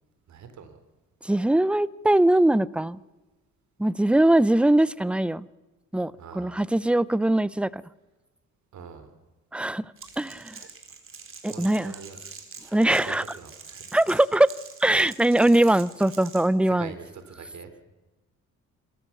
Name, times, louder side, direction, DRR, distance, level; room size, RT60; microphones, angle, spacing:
voice 1, 0.3-0.8 6.2-6.6 8.7-9.1 11.5-12.2 12.6-13.8 16.7-17.7, right 6 dB, 65° right, 9 dB, 3.5 m, -43 dB
voice 2, 1.2-3.0 3.8-5.5 5.9-7.8 9.5-10.6 11.4-11.9 12.7-13.2 13.9-14.5 14.8-16.9, right 1 dB, 5° right, 20 dB, 0.6 m, -21 dB
Crackle, 10.0-16.5, right 5 dB, 45° right, 3.8 m, -45 dB
26.5 x 14.0 x 7.2 m, 1.2 s
cardioid pair, 90°, 30 cm